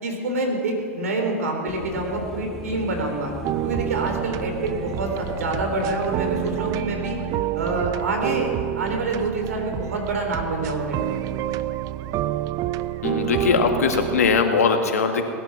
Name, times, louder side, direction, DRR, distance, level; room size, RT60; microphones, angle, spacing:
voice 1, 0.0-3.3 3.6-7.2 7.5-11.2, right 2 dB, 85° right, 3 dB, 3.7 m, -27 dB
sound 1, 1.7-6.8, left 1 dB, 5° left, 2.0 m, -37 dB
sound 2, 3.4-14.4, right 13 dB, 45° right, 0.6 m, -28 dB
voice 2, 13.0-15.2, left 5 dB, 85° left, 4 dB, 1.9 m, -20 dB
19.5 x 11.5 x 6.0 m, 2.3 s
hypercardioid pair, 100°, 8 cm